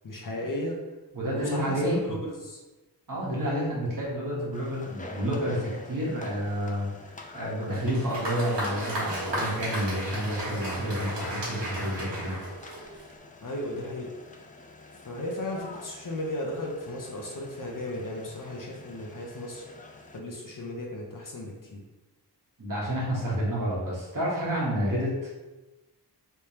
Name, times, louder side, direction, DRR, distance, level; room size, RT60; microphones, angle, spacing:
voice 1, 0.0-0.8 1.3-2.6 3.4-3.8 13.4-14.2 15.0-19.6 20.1-21.8, left 1 dB, 50° left, -1 dB, 0.7 m, -35 dB
voice 2, 1.1-2.0 3.1-6.9 7.3-12.4 22.6-25.1, equal, 50° right, -6 dB, 1.4 m, -29 dB
sound 1, 4.5-20.2, left 2 dB, 20° left, 0.3 m, -48 dB
Applause, 7.6-13.2, right 1 dB, 80° right, 1.3 m, -34 dB
3.3 x 3.3 x 2.9 m, 1.1 s
wide cardioid pair, 90°, 42 cm